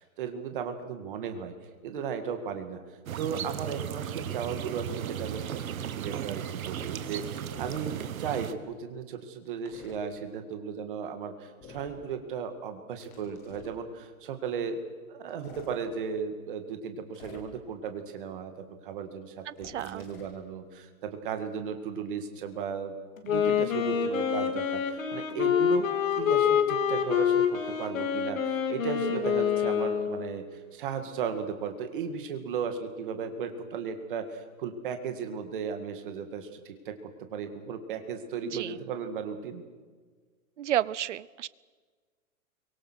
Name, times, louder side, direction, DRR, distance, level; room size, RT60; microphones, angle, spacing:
voice 1, 0.2-1.5 1.8-2.8 3.2-14.8 15.1-22.9 23.2-36.9 37.3-39.6, right 6 dB, 35° right, 7 dB, 2.2 m, -36 dB
sound 1, 3.1-8.5, right 10 dB, 70° right, 1.4 m, -36 dB
sound 2, 7.5-7.8 9.6-10.0 11.6-12.0 13.0-13.8 15.3-15.7 17.1-17.7 19.5-20.4, left 4 dB, 5° left, 0.6 m, -49 dB
voice 2, 19.5-20.1 38.4-38.8 40.6-41.5, right 11 dB, 55° right, 21 dB, 0.7 m, -31 dB
Wind instrument woodwind instrument, 23.2-30.3, left 8 dB, 65° left, 3.3 m, -27 dB
26.5 x 24.0 x 6.4 m, 1.5 s
hypercardioid pair, 180°, 43 cm